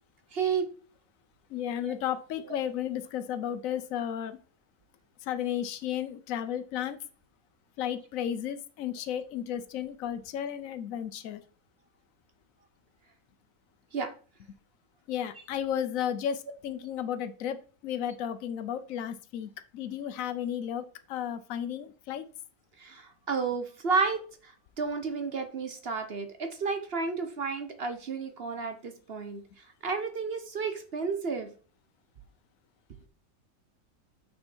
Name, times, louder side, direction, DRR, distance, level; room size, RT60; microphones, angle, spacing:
voice 1, 0.3-0.7 1.8-2.0 2.5-2.6 13.9-14.1 22.8-29.4 29.8-31.5, right 5 dB, 45° right, 7 dB, 1.1 m, -32 dB
voice 2, 1.5-4.4 5.3-7.0 7.8-11.4 15.1-22.2, left 9 dB, 70° left, 10 dB, 1.1 m, -33 dB
6.2 x 6.0 x 4.4 m, 0.40 s
omnidirectional pair, 1.6 m